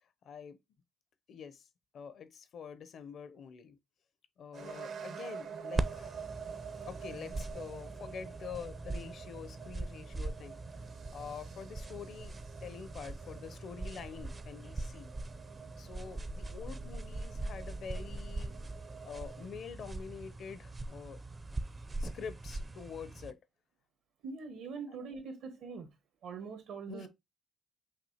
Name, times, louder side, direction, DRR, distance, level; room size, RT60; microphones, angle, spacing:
voice 1, 0.2-0.6 1.3-1.7 1.9-3.8 4.4-6.2 6.8-10.6 10.9-15.1 15.8-18.5 19.0-21.2 22.0-23.4 26.9-27.1, left 6 dB, 65° left, 0.7 m, -46 dB
sound 1, 4.5-19.5, right 6 dB, 65° right, 0.7 m, -48 dB
sound 2, 5.8-23.3, right 2 dB, 30° right, 0.5 m, -41 dB
voice 2, 24.2-25.9 26.2-27.1, right 5 dB, 85° right, 1.4 m, -43 dB
5.9 x 2.6 x 2.8 m
cardioid pair, 90°, 0 cm